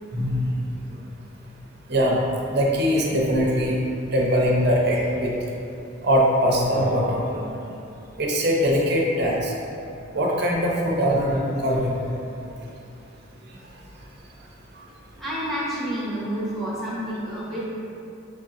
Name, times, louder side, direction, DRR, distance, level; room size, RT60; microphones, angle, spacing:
voice 1, 0.1-0.5 1.9-2.2 2.5-3.8 4.1-5.3 6.0-7.5 8.2-9.5 10.1-12.1, equal, 55° right, -2 dB, 0.6 m, -22 dB
voice 2, 15.2-17.7, equal, ahead, -9 dB, 1.0 m, -29 dB
6.2 x 2.7 x 2.5 m, 2.7 s
head